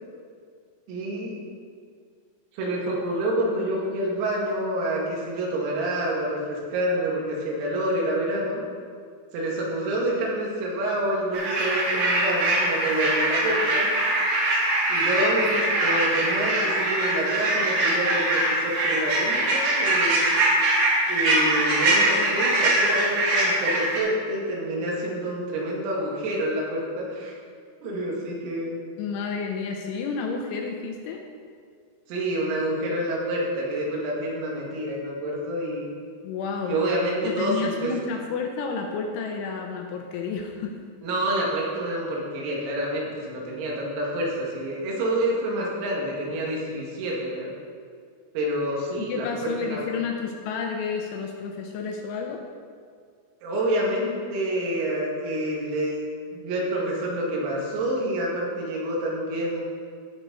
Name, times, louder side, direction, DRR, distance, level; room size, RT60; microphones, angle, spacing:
voice 1, 0.9-1.4 2.5-8.6 9.3-13.9 14.9-20.2 21.1-27.3 27.8-28.8 32.1-35.9 36.6-37.9 41.0-47.5 48.3-49.3 49.6-50.0 53.4-56.0 56.3-59.6, right 1 dB, 90° right, -3 dB, 4.9 m, -27 dB
sound 1, 11.3-24.0, right 2 dB, 55° right, 4.2 m, -23 dB
voice 2, 29.0-31.2 36.2-36.8 37.2-40.8 49.0-52.4, left 5 dB, 80° left, 2 dB, 2.9 m, -31 dB
17.5 x 7.1 x 4.1 m, 2.1 s
omnidirectional pair, 6.0 m